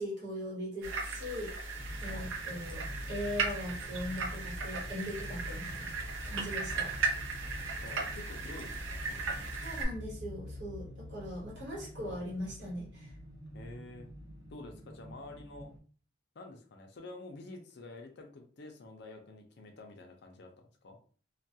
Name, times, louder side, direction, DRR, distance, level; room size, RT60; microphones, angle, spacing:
voice 1, 0.0-1.5 2.0-5.9 6.2-6.9 9.6-13.1, equal, 55° right, -3 dB, 1.0 m, -40 dB
sound 1, 0.8-9.9, right 3 dB, 80° right, 0.6 m, -37 dB
sound 2, 1.7-15.8, left 1 dB, 20° right, 0.5 m, -46 dB
voice 2, 7.8-9.5 12.0-12.2 13.5-14.1 14.5-15.7 16.3-21.0, left 2 dB, 55° left, 3 dB, 0.4 m, -49 dB
2.2 x 2.2 x 2.6 m, 0.42 s
head